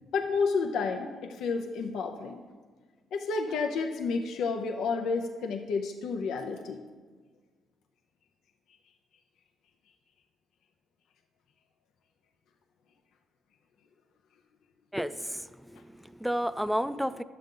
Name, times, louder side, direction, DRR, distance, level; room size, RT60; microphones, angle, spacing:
voice 1, 0.1-2.4 3.1-6.8, left 4 dB, 80° left, 4 dB, 0.6 m, -30 dB
voice 2, 14.9-17.2, equal, ahead, 13 dB, 0.3 m, -32 dB
10.5 x 7.6 x 3.8 m, 1.4 s
cardioid pair, 90°, 0 cm